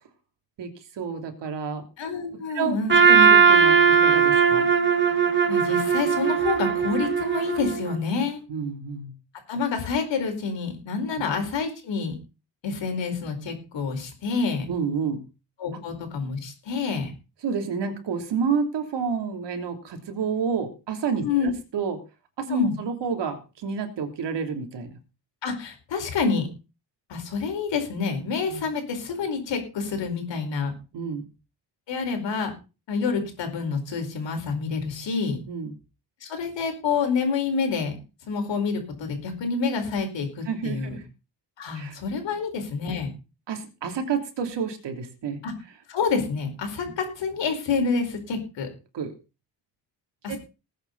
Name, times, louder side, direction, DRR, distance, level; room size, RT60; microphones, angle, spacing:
voice 1, 1.0-1.8 2.3-2.8 3.1-4.7 8.5-9.1 14.7-15.2 15.7-15.8 17.4-22.0 22.4-24.9 28.5-28.6 30.9-31.3 35.5-35.7 40.5-41.0 41.7-42.0 43.5-45.4 46.8-46.9 48.9-49.1 50.3-50.4, right 6 dB, 75° right, 5 dB, 3.1 m, -29 dB
voice 2, 2.0-3.0 5.5-8.4 9.5-12.2 12.6-14.7 15.6-17.1 21.2-21.5 22.5-22.7 25.4-26.5 27.1-30.7 31.9-32.5 32.9-35.4 36.2-37.9 38.3-41.0 41.6-43.1 45.4-45.5 45.9-48.7 50.2-50.4, left 5 dB, 85° left, 5 dB, 4.9 m, -28 dB
Trumpet, 2.9-8.0, right 6 dB, 25° right, 1.5 m, -19 dB
20.0 x 8.4 x 4.0 m, 0.31 s
wide cardioid pair, 175°, 43 cm